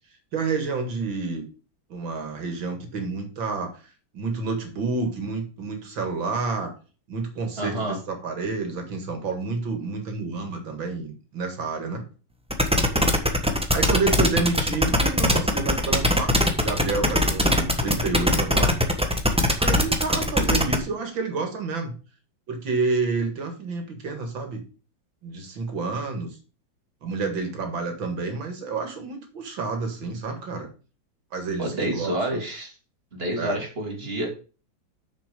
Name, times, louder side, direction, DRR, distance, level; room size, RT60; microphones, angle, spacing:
voice 1, 0.3-1.4 1.9-3.8 4.1-6.7 7.1-12.0 13.7-18.8 19.6-21.9 22.5-24.6 25.2-26.3 27.0-30.7 31.3-32.4 33.4-33.6, right 4 dB, 70° right, 5 dB, 2.7 m, -29 dB
voice 2, 7.6-8.0 31.6-32.7 33.1-34.3, right 1 dB, 30° right, 0 dB, 2.8 m, -28 dB
sound 1, 12.5-20.8, equal, 5° right, 0.8 m, -21 dB
6.8 x 6.3 x 5.2 m, 0.35 s
omnidirectional pair, 2.2 m